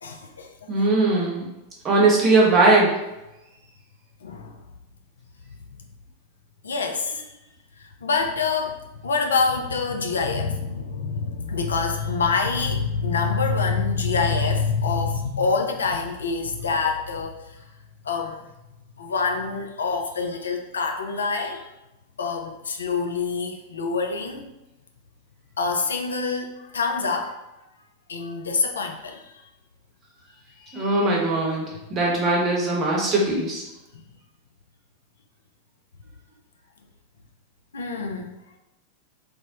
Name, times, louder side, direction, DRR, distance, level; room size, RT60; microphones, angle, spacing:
voice 1, 0.0-0.7 4.2-4.6 6.6-7.4 7.8-17.6 18.0-18.4 19.0-21.7 22.2-24.5 25.6-27.4 28.1-29.4 30.6-31.1 37.7-38.3, left 4 dB, 70° left, 3 dB, 0.3 m, -26 dB
voice 2, 0.7-1.4 1.8-2.9 30.7-33.6, right 2 dB, 30° right, -2 dB, 0.9 m, -20 dB
3.3 x 2.0 x 2.7 m, 0.95 s
figure-of-eight pair, 90°, 0 cm